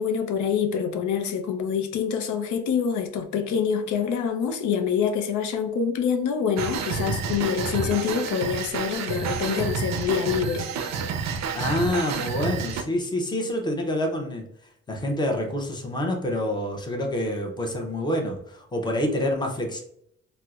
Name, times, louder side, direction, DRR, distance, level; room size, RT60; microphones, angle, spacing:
voice 1, 0.0-10.7, left 7 dB, 85° left, 0.5 m, -26 dB
sound 1, 6.6-12.8, right 5 dB, 65° right, 0.4 m, -29 dB
voice 2, 11.5-14.5 14.9-19.8, left 1 dB, 15° left, 0.6 m, -27 dB
4.3 x 2.0 x 2.3 m
cardioid pair, 115°, 29 cm